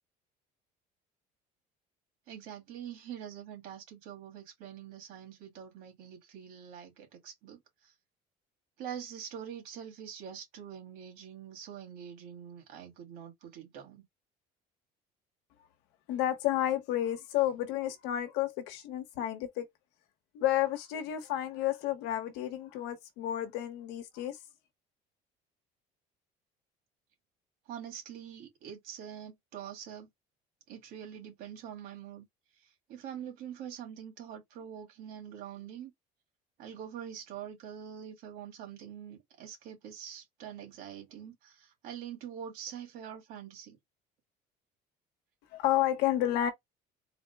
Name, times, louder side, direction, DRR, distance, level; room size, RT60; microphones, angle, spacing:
voice 1, 2.3-7.9 8.8-14.0 27.7-30.1 30.7-32.3 32.5-35.9 36.6-43.8, right 9 dB, 60° right, 2.1 m, -45 dB
voice 2, 16.1-19.6 20.3-24.4 45.5-46.5, left 12 dB, 80° left, 1.0 m, -31 dB
4.0 x 2.1 x 3.4 m
cardioid pair, 180°, 17 cm